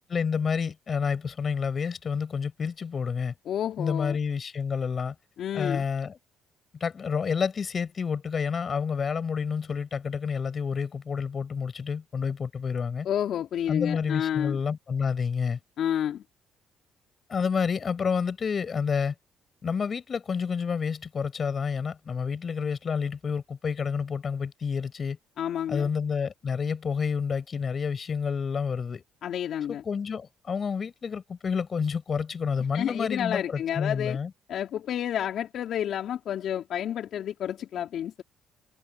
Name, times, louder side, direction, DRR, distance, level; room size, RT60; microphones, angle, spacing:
voice 1, 0.1-3.3 3.8-5.1 5.5-6.2 6.8-13.1 13.7-15.6 17.3-19.1 19.6-25.2 25.7-29.0 29.7-34.3, left 6 dB, 45° left, 7.6 m, -29 dB
voice 2, 3.5-4.2 5.4-5.8 13.0-14.6 15.8-16.2 25.4-25.9 29.2-29.8 32.7-34.2 34.5-38.2, left 10 dB, 65° left, 3.8 m, -30 dB
supercardioid pair, 65°, 0 cm